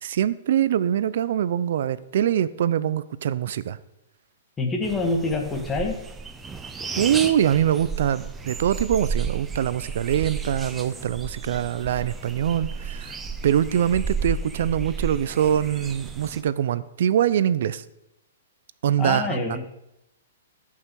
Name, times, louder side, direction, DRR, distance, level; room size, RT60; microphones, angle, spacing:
voice 1, 0.0-3.8 7.0-13.2 13.4-17.8 18.8-19.4, right 10 dB, 60° right, 17 dB, 0.5 m, -23 dB
voice 2, 4.6-6.0 19.0-19.7, left 3 dB, 15° left, 2 dB, 1.6 m, -26 dB
sound 1, 4.8-16.4, right 5 dB, 10° right, 0.6 m, -33 dB
14.0 x 5.6 x 4.7 m, 0.85 s
hypercardioid pair, 150°, 0 cm